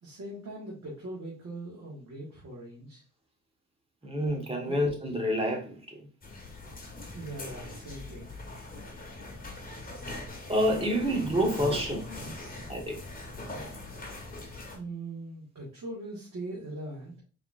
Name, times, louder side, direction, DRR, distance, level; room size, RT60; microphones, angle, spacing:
voice 1, 0.0-3.0 4.7-4.8 7.1-8.3 14.7-17.2, right 2 dB, 55° right, 1.8 m, -41 dB
voice 2, 4.0-5.8 10.5-12.1 12.7-13.0, equal, 15° right, 1.5 m, -28 dB
sound 1, 6.2-14.8, left 2 dB, 25° left, 1.7 m, -41 dB
4.6 x 3.7 x 2.6 m
cardioid pair, 95°, 32 cm